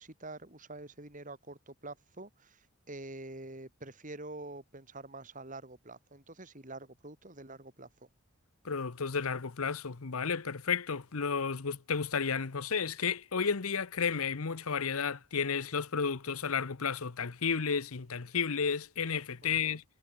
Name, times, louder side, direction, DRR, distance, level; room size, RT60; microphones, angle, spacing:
voice 1, 0.0-8.1 19.4-19.8, right 2 dB, 35° right, 3.1 m, -47 dB
voice 2, 8.6-19.8, left 6 dB, 70° left, 0.9 m, -32 dB
head